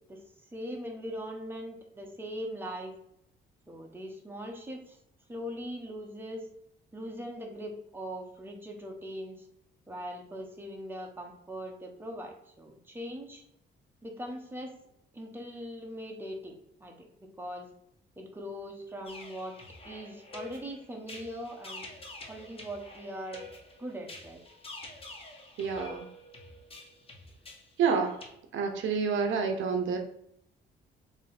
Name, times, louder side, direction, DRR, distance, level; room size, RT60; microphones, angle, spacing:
voice 1, 0.5-2.9 3.7-5.0 5.3-6.5 6.9-9.5 9.9-13.4 14.0-14.7 15.1-17.1 17.4-17.7 18.2-19.6 19.8-21.9 22.3-23.4 23.8-24.4, equal, 10° right, 0 dB, 0.9 m, -40 dB
sound 1, 19.0-28.3, left 2 dB, 30° left, 1.0 m, -47 dB
voice 2, 25.6-26.1 27.8-28.2 28.5-30.0, right 5 dB, 75° right, 4 dB, 0.7 m, -28 dB
3.3 x 2.9 x 4.1 m, 0.74 s
cardioid pair, 90°, 20 cm